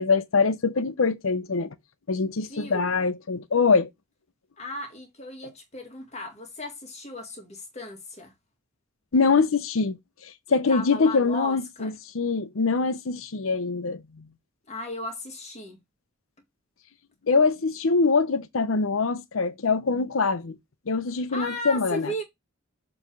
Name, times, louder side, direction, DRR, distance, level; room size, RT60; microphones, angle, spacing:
voice 1, 0.0-1.7 2.1-3.9 9.1-10.0 10.2-14.0 17.3-20.6 20.9-22.1, left 4 dB, 75° left, 0.7 m, -24 dB
voice 2, 2.5-2.9 4.6-8.3 10.5-11.9 14.7-15.8 21.3-22.2, left 1 dB, 35° left, 1.9 m, -36 dB
6.9 x 3.2 x 5.9 m
head